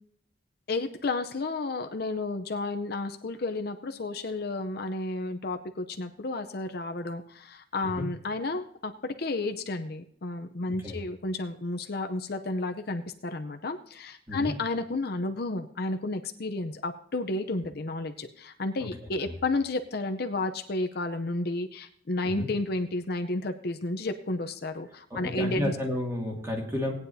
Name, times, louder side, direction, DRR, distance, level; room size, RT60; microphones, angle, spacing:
voice 1, 0.7-25.7, left 2 dB, 55° left, 7 dB, 0.6 m, -32 dB
voice 2, 25.1-26.9, left 1 dB, 15° right, -1 dB, 2.3 m, -32 dB
18.5 x 9.5 x 2.7 m, 0.63 s
head